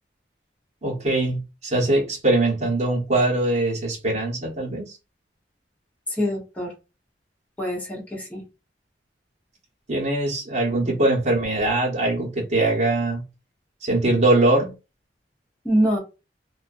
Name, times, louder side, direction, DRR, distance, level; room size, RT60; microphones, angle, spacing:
voice 1, 0.8-4.9 9.9-13.2 13.8-14.7, right 2 dB, 40° right, 1.1 m, -22 dB
voice 2, 6.1-6.7 7.6-8.4 15.6-16.0, equal, 10° left, 1.0 m, -24 dB
2.5 x 2.3 x 2.5 m
head